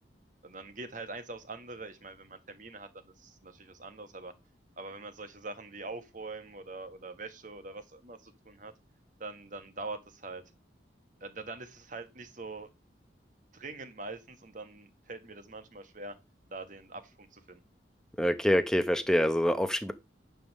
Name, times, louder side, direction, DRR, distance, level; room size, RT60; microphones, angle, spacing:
voice 1, 0.4-4.3 4.8-8.7 9.2-10.4 11.2-12.7 13.5-16.1 16.5-17.6, right 3 dB, 45° right, 1.3 m, -43 dB
voice 2, 18.2-19.9, equal, 5° left, 0.8 m, -26 dB
10.5 x 3.7 x 6.6 m
head